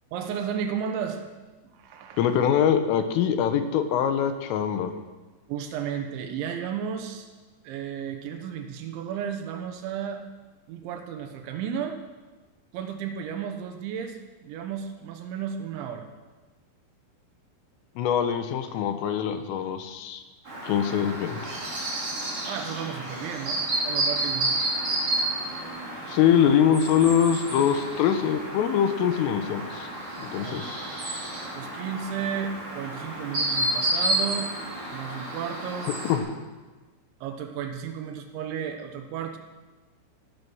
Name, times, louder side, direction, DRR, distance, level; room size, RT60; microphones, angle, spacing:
voice 1, 0.1-1.2 1.7-2.3 5.5-7.3 7.6-10.2 10.7-12.0 12.7-16.1 22.4-24.5 30.4-30.7 31.5-34.5 34.9-35.9 37.2-39.4, right 8 dB, 75° right, 6 dB, 3.3 m, -33 dB
voice 2, 2.2-4.9 18.0-20.2 20.6-21.5 26.1-29.9 30.2-30.8 36.1-36.3, left 8 dB, 80° left, 7 dB, 3.8 m, -23 dB
Chirp tweet, 20.5-36.2, right 1 dB, 30° right, 5.5 m, -31 dB
16.5 x 12.5 x 6.3 m, 1.3 s
omnidirectional pair, 5.8 m